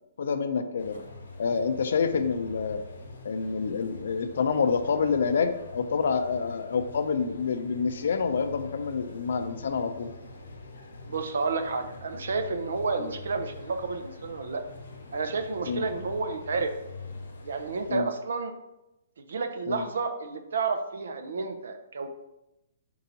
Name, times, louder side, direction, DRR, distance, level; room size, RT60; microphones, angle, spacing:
voice 1, 0.2-1.0 1.4-2.8 3.2-10.1 13.0-13.1 15.7-15.9 17.9-18.1 19.7-19.8, left 5 dB, 70° left, 9 dB, 0.5 m, -27 dB
sound 1, 0.8-17.9, left 3 dB, 90° left, 0.8 m, -44 dB
voice 2, 11.0-14.6 15.1-16.7 17.4-18.5 19.2-22.1, right 4 dB, 75° right, 7 dB, 0.6 m, -31 dB
4.6 x 2.8 x 3.9 m, 0.91 s
hypercardioid pair, 155°, 0 cm